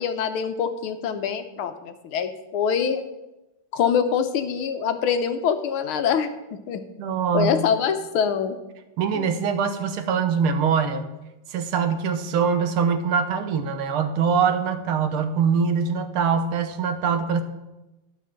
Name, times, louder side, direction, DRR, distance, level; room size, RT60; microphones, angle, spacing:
voice 1, 0.0-3.0 3.7-6.8 7.3-8.6 9.1-9.3, left 7 dB, 80° left, 8 dB, 1.7 m, -24 dB
voice 2, 7.0-7.5 9.0-11.1 11.5-17.4, right 6 dB, 85° right, 8 dB, 1.9 m, -23 dB
11.5 x 6.0 x 7.5 m, 1.0 s
omnidirectional pair, 2.3 m